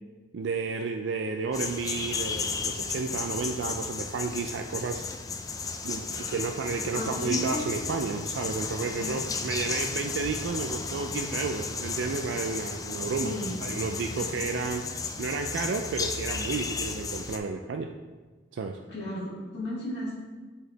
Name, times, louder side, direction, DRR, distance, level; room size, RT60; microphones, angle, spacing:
voice 1, 0.3-5.0 5.8-13.3 13.6-14.8 15.2-17.9 18.5-18.8, right 4 dB, 75° right, 4 dB, 0.4 m, -32 dB
sound 1, 1.5-17.4, left 4 dB, 20° left, 0.3 m, -34 dB
voice 2, 6.9-7.6 9.0-9.2 13.2-13.6 14.1-14.2 18.9-20.2, equal, 60° left, -6 dB, 2.0 m, -34 dB
7.7 x 4.8 x 3.3 m, 1.3 s
head